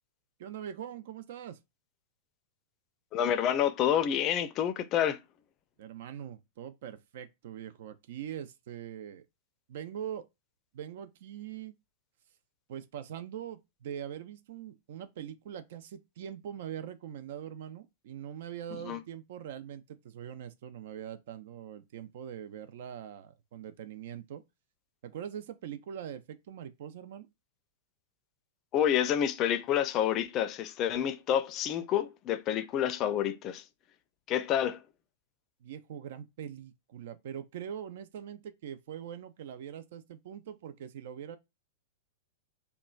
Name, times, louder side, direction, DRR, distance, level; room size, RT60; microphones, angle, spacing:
voice 1, 0.4-1.6 5.8-9.3 9.7-10.3 10.7-11.7 12.7-24.4 25.0-27.3 35.6-41.4, right 9 dB, 60° right, 0.4 m, -42 dB
voice 2, 3.1-5.2 18.8-19.0 28.7-33.6 34.3-34.8, left 10 dB, 35° left, 0.4 m, -28 dB
2.9 x 2.2 x 2.4 m
figure-of-eight pair, 100°, 0 cm